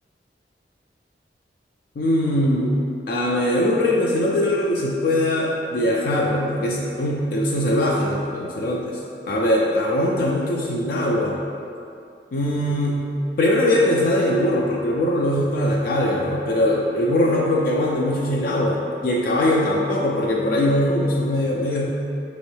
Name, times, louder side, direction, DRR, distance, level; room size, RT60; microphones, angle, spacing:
voice 1, 2.0-2.8 3.1-9.0 9.3-11.4 12.3-13.1 13.4-21.9, left 1 dB, 55° left, -3 dB, 0.4 m, -21 dB
4.4 x 3.1 x 3.1 m, 2.5 s
head